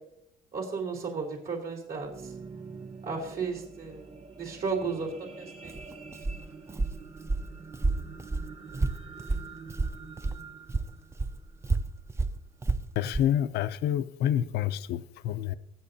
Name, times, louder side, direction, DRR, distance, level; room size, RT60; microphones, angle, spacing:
voice 1, 0.5-2.3 3.0-4.1 4.4-5.7, right 4 dB, 65° right, 0 dB, 3.6 m, -34 dB
sound 1, 1.8-12.2 12.8-12.9, right 5 dB, 35° right, 1.2 m, -46 dB
Walk footsteps, 5.6-10.4 10.7-13.3, right 3 dB, 15° right, 0.5 m, -31 dB
voice 2, 13.0-15.6, left 11 dB, 75° left, 12 dB, 0.6 m, -28 dB
22.0 x 8.2 x 2.7 m, 0.76 s
cardioid pair, 110°, 17 cm